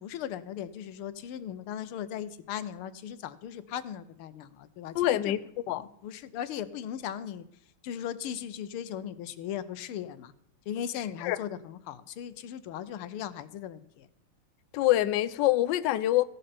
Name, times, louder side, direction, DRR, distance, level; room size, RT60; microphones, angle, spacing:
voice 1, 0.0-5.3 6.0-7.5 7.8-10.3 10.7-14.1, left 9 dB, 85° left, 1.7 m, -38 dB
voice 2, 4.9-5.4 5.7-5.9 11.2-11.4 14.7-16.2, left 14 dB, 70° left, 1.2 m, -25 dB
15.5 x 12.0 x 4.3 m
omnidirectional pair, 2.3 m